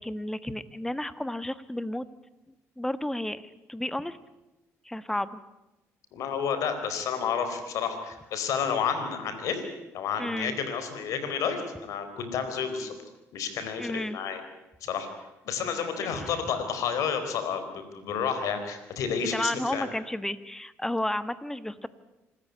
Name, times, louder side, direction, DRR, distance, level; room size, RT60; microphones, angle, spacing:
voice 1, 0.0-2.1 2.8-4.2 4.8-5.3 10.2-10.6 13.8-14.2 16.0-16.4 19.3-21.9, left 1 dB, 5° left, 14 dB, 1.3 m, -32 dB
voice 2, 6.1-9.6 9.9-13.0 13.3-14.4 14.8-15.1 15.4-19.9, left 7 dB, 75° left, 8 dB, 4.3 m, -30 dB
26.0 x 14.0 x 9.7 m, 0.99 s
cardioid pair, 85°, 6 cm